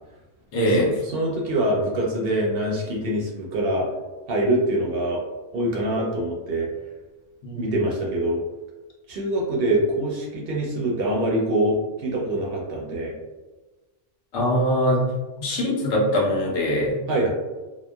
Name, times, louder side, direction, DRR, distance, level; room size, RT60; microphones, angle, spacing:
voice 1, 0.5-1.0 7.4-7.8 14.3-15.1 15.4-17.0, equal, 70° left, -3 dB, 1.0 m, -22 dB
voice 2, 1.1-3.9 4.3-5.2 5.5-6.7 7.5-8.4 9.1-13.1 17.1-17.3, right 1 dB, 65° right, -2 dB, 0.7 m, -24 dB
2.8 x 2.1 x 2.2 m, 1.2 s
omnidirectional pair, 1.3 m